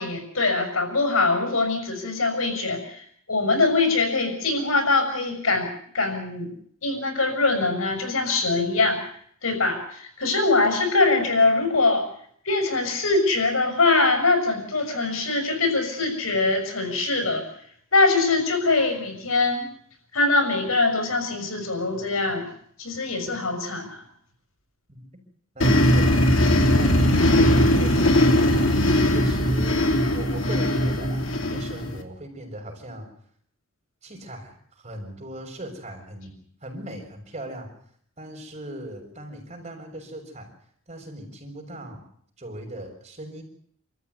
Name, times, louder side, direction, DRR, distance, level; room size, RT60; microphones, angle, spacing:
voice 1, 0.0-5.7 5.9-6.5 6.8-9.0 9.4-12.1 12.4-17.4 17.9-19.7 20.1-22.5 22.8-24.0, left 3 dB, 85° left, 5 dB, 6.8 m, -23 dB
voice 2, 25.5-28.7 29.0-33.1 34.0-36.3 36.6-37.7 38.2-40.5 40.9-42.0 42.4-43.4, right 1 dB, 30° right, 3 dB, 6.7 m, -39 dB
sound 1, 25.6-32.0, left 1 dB, 65° left, 3.2 m, -19 dB
27.5 x 14.0 x 9.6 m, 0.65 s
head